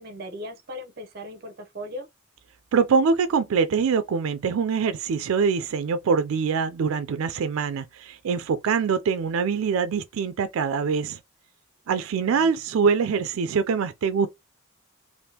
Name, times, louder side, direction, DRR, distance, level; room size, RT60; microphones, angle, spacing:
voice 1, 0.0-2.1 11.9-12.5, equal, 50° right, 0.7 m, -38 dB
voice 2, 2.7-11.2 11.9-14.3, right 5 dB, 85° right, 0.4 m, -24 dB
3.4 x 2.6 x 2.8 m
head